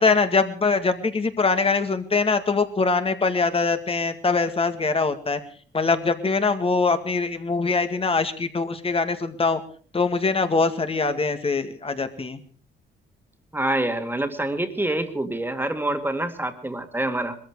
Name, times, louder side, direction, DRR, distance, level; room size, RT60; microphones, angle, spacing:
voice 1, 0.0-5.4 5.7-9.6 9.9-12.4, left 4 dB, 30° left, 9 dB, 2.0 m, -23 dB
voice 2, 13.5-17.4, right 1 dB, 10° right, 7 dB, 2.2 m, -26 dB
21.0 x 14.0 x 4.8 m, 0.42 s
cardioid pair, 90°, 20 cm